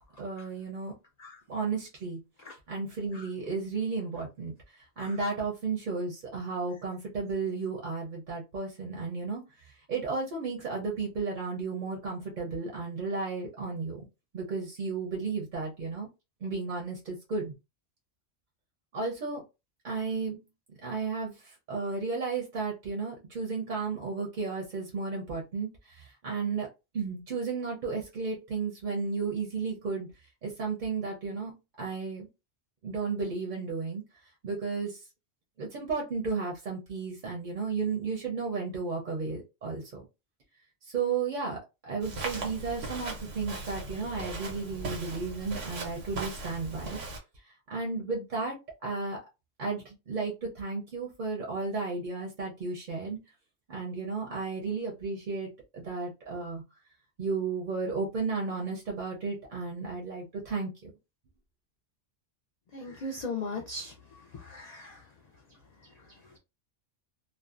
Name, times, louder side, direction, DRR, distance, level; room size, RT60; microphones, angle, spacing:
voice 1, 0.2-0.9 1.5-2.2 2.7-4.5 5.0-9.4 9.9-14.1 14.3-16.1 16.4-17.5 18.9-19.4 19.8-20.4 20.8-26.7 26.9-30.1 30.4-32.3 32.8-34.0 34.4-35.0 35.6-40.0 40.8-41.6 41.8-47.0 47.7-48.6 48.8-49.2 49.6-53.2 53.7-56.6 57.2-60.9, right 4 dB, 50° right, -1 dB, 0.6 m, -33 dB
Walk footsteps, 42.0-47.2, right 2 dB, 85° right, 1.2 m, -38 dB
voice 2, 62.7-63.9 64.5-64.9, left 3 dB, 65° left, 2 dB, 0.4 m, -36 dB
2.5 x 2.0 x 2.4 m, 0.26 s
omnidirectional pair, 1.2 m